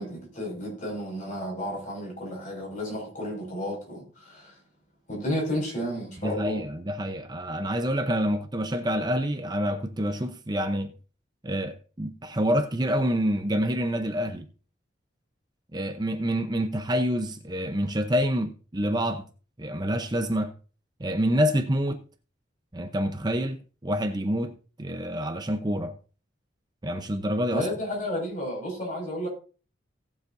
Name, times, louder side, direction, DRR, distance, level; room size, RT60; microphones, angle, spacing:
voice 1, 0.0-4.6 5.1-6.6 27.5-29.3, equal, 45° left, 5.9 m, -32 dB
voice 2, 6.2-10.9 11.4-14.5 15.7-19.3 19.6-20.5 21.0-22.0 22.7-26.0 26.8-27.7, equal, 20° right, 0.7 m, -27 dB
17.5 x 7.2 x 2.7 m
head